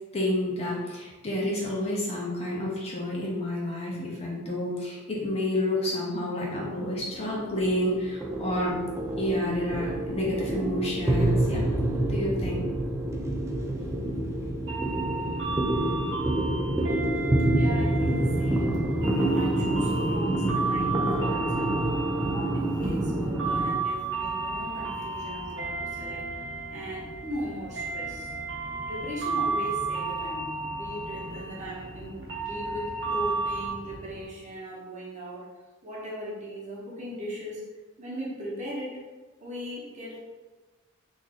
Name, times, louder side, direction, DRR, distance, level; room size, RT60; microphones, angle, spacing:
voice 1, 0.1-8.8 9.2-11.7 12.1-12.6, left 1 dB, 30° left, -4 dB, 0.6 m, -29 dB
sound 1, 6.9-23.7, right 1 dB, 15° right, 0.4 m, -27 dB
sound 2, 14.7-33.7, right 4 dB, 60° right, 0.9 m, -33 dB
sound 3, 14.8-34.2, right 1 dB, 85° right, 0.8 m, -44 dB
voice 2, 17.5-18.7 19.2-21.8 22.2-26.2 26.7-28.3 28.9-35.5 35.8-37.6 38.0-39.0 39.4-40.2, equal, 35° right, -6 dB, 1.0 m, -38 dB
3.1 x 2.6 x 3.7 m, 1.3 s
head